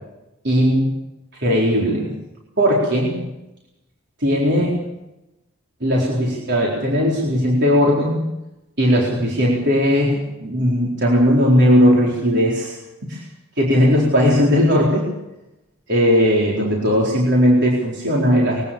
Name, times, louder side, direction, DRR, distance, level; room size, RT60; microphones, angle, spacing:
voice 1, 0.4-0.9 1.4-2.1 2.6-3.2 4.2-4.8 5.8-8.3 8.8-13.2 13.6-15.1 15.9-18.6, equal, 55° right, -3 dB, 4.4 m, -17 dB
23.0 x 16.5 x 7.1 m, 0.94 s
head